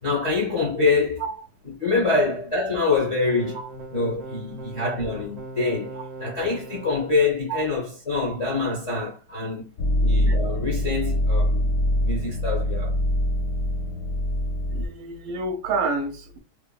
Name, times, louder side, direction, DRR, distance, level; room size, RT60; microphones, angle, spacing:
voice 1, 0.0-1.2 1.8-3.6 3.9-9.6 10.0-11.7 12.0-13.0, left 3 dB, 40° left, 0.4 m, -25 dB
sound 1, 3.2-7.1, right 2 dB, 40° right, 0.6 m, -39 dB
sound 2, 9.8-14.9, left 1 dB, 70° left, 0.9 m, -23 dB
voice 2, 14.7-16.4, right 3 dB, 70° right, 1.0 m, -28 dB
3.2 x 2.1 x 2.2 m
omnidirectional pair, 1.7 m